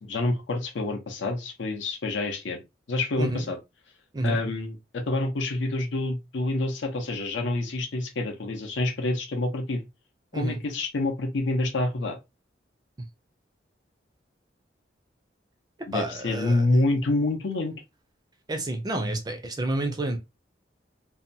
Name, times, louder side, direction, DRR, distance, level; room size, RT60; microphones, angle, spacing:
voice 1, 0.0-2.6 2.9-3.6 4.2-9.8 10.3-12.2 15.9-17.7, left 2 dB, 80° left, 0.6 m, -27 dB
voice 2, 3.2-3.5 4.1-4.4 10.3-10.6 13.0-13.1 15.9-16.7 18.5-20.2, right 2 dB, 20° right, 0.4 m, -29 dB
2.7 x 2.1 x 2.6 m
head